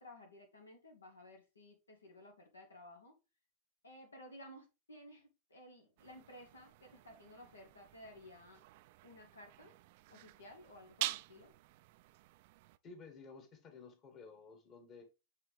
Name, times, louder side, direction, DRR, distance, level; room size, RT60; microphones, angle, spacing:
voice 1, 0.0-3.2 3.8-8.6 9.0-9.7 10.1-11.5, left 1 dB, 75° left, 1.2 m, -56 dB
sound 1, 6.0-12.8, right 17 dB, 50° right, 0.3 m, -47 dB
voice 2, 12.8-15.0, left 4 dB, 30° left, 1.7 m, -54 dB
8.0 x 3.8 x 3.3 m
figure-of-eight pair, 90°, 0 cm